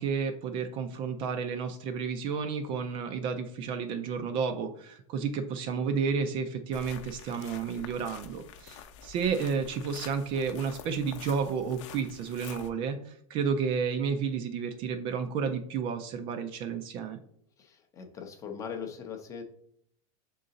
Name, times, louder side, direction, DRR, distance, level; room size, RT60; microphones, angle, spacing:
voice 1, 0.0-17.2, right 6 dB, 30° right, 8 dB, 0.4 m, -31 dB
sound 1, 6.7-12.7, left 8 dB, 55° left, 0.6 m, -47 dB
voice 2, 17.6-19.4, left 7 dB, 20° left, 5 dB, 0.6 m, -40 dB
6.4 x 3.8 x 4.0 m, 0.67 s
supercardioid pair, 170°, 18 cm